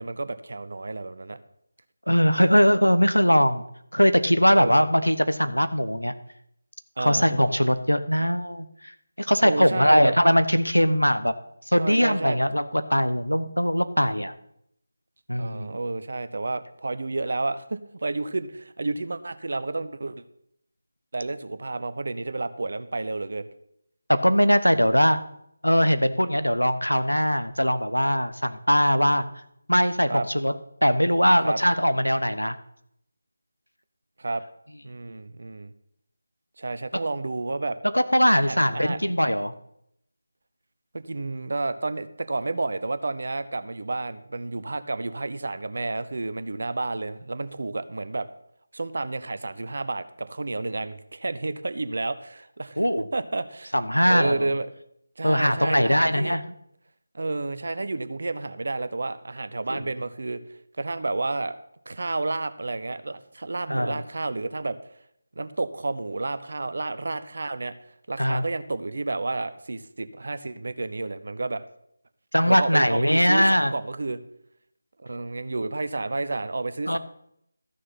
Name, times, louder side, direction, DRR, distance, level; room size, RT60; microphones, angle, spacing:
voice 1, 0.0-1.4 4.5-4.9 7.0-7.2 9.4-10.1 11.8-12.4 15.4-20.2 21.1-23.5 30.1-30.3 31.4-31.6 34.2-34.4 34.8-35.7 36.6-37.8 38.4-39.0 40.9-48.3 48.7-53.7 54.0-54.7 55.2-56.4 57.1-60.4 60.8-61.6 61.9-64.8 65.4-71.6 72.5-74.2 75.0-77.0, right 2 dB, 50° right, 12 dB, 0.8 m, -30 dB
voice 2, 2.1-3.6 3.9-6.1 7.0-11.3 11.7-14.3 15.3-15.8 24.1-25.2 25.6-29.3 29.7-30.5 30.8-32.6 37.9-39.5 52.8-53.1 53.7-54.5 55.2-56.4 59.7-59.8 63.7-64.0 68.2-68.4 72.3-73.7 76.9-77.0, equal, 90° left, 11 dB, 1.0 m, -21 dB
13.5 x 6.5 x 5.8 m, 0.73 s
figure-of-eight pair, 160°, 0 cm